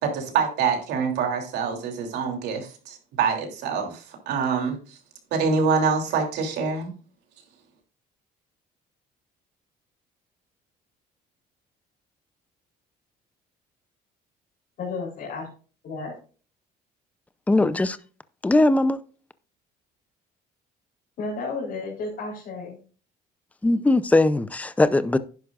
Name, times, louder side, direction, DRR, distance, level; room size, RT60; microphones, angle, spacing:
voice 1, 0.0-5.0 5.3-6.9, right 5 dB, 80° right, 3.0 m, -25 dB
voice 2, 14.8-15.5 15.8-16.1 21.2-22.8, left 3 dB, 60° left, 4.0 m, -32 dB
voice 3, 17.5-18.0 18.4-19.0 23.6-25.2, left 2 dB, 10° left, 0.5 m, -20 dB
11.0 x 10.5 x 2.4 m
cardioid pair, 110°, 17 cm